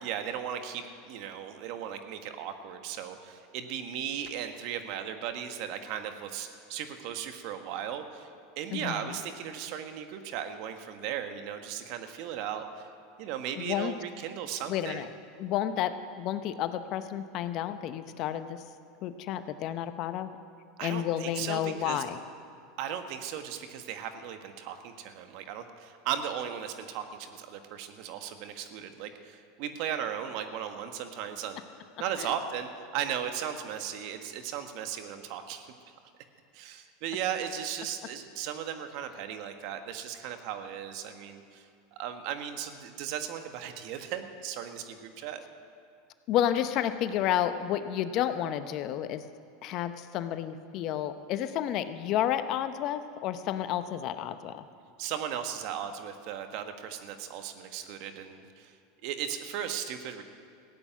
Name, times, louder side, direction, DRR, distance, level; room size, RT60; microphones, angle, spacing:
voice 1, 0.0-8.3 8.6-12.9 13.2-15.1 20.8-22.0 22.8-31.6 32.0-35.7 36.5-41.6 41.9-45.4 55.0-58.7 59.0-60.2, right 9 dB, 60° right, 7 dB, 1.4 m, -36 dB
voice 2, 8.7-9.2 13.6-13.9 14.7-15.1 15.4-18.6 19.0-20.3 20.8-22.2 32.2-32.3 46.3-49.2 49.6-54.7, left 11 dB, 50° left, 10 dB, 0.8 m, -31 dB
15.5 x 8.5 x 9.2 m, 2.4 s
supercardioid pair, 110°, 0 cm